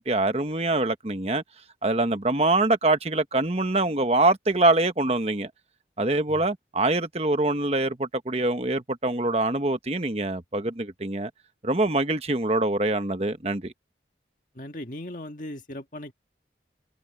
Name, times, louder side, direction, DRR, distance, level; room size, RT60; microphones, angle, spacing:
voice 1, 0.0-1.4 1.8-5.5 6.0-11.3 11.6-13.7, right 2 dB, 35° right, 1.3 m, -24 dB
voice 2, 14.6-16.1, left 1 dB, 45° left, 1.8 m, -38 dB
head